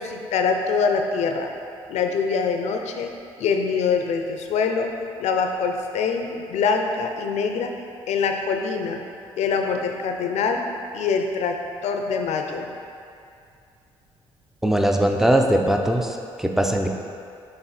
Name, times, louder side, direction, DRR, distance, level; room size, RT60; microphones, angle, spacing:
voice 1, 0.0-1.5 1.9-3.1 3.4-4.9 5.2-7.7 8.1-9.0 9.4-10.6 10.9-11.6 11.8-12.7, left 5 dB, 75° left, 4 dB, 0.6 m, -24 dB
voice 2, 14.6-16.9, right 1 dB, 5° right, 3 dB, 0.6 m, -20 dB
6.8 x 3.6 x 4.2 m, 2.5 s
supercardioid pair, 60°, 12 cm